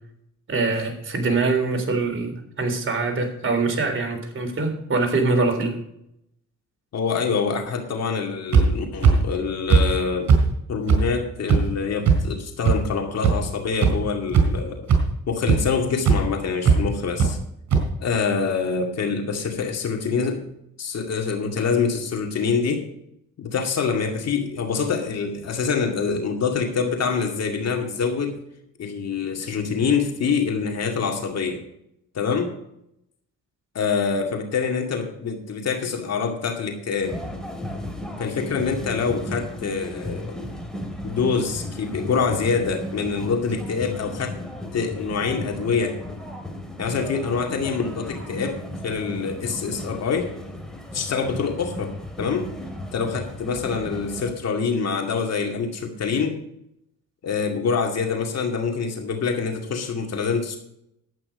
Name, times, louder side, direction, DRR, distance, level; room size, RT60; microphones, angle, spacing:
voice 1, 0.5-5.8, right 3 dB, 40° right, 4 dB, 3.5 m, -23 dB
voice 2, 6.9-10.3 10.7-14.9 15.3-17.4 18.0-20.5 20.8-22.8 23.4-28.4 28.8-31.6 32.1-32.5 33.7-37.2 38.2-40.4 41.0-44.4 44.7-46.0 46.8-50.3 50.9-52.5 52.9-56.4 57.2-60.6, left 5 dB, 55° left, 3 dB, 2.3 m, -25 dB
sound 1, 8.5-8.6 9.0-9.1 9.7-9.8 10.3-10.4 10.9-11.0 11.5-11.6 12.1-12.2 12.7-12.8 13.2-13.3 13.8-13.9 14.3-14.6 14.9-15.0 15.5-15.6 16.1-16.2 16.6-16.8 17.2-17.3 17.7-17.8, right 6 dB, 65° right, 3.9 m, -16 dB
sound 2, 37.0-54.3, left 1 dB, ahead, 2.7 m, -35 dB
11.5 x 8.9 x 5.0 m, 0.76 s
cardioid pair, 90°, 30 cm